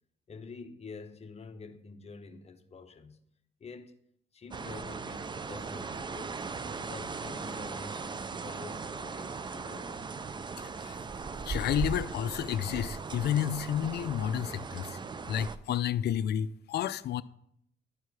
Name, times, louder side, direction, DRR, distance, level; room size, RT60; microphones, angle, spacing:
voice 1, 0.3-3.2 3.6-3.9 4.3-10.1, left 4 dB, 30° left, 0.9 m, -47 dB
sound 1, 4.5-15.6, right 4 dB, 25° right, 0.4 m, -38 dB
voice 2, 11.4-15.0 15.3-17.2, left 10 dB, 55° left, 0.4 m, -31 dB
11.0 x 4.7 x 4.7 m
cardioid pair, 90°, 20 cm